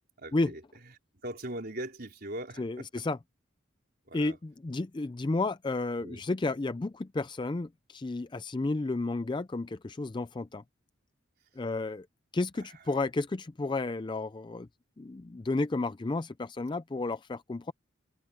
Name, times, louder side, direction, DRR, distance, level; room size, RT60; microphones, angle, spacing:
voice 1, 0.0-3.0 4.1-4.4 6.0-6.2 12.6-12.8, right 1 dB, 50° right, 4.2 m, -41 dB
voice 2, 2.6-3.2 4.1-10.6 11.6-12.1 12.3-14.7 15.0-17.7, left 2 dB, 25° left, 0.4 m, -32 dB
open air
head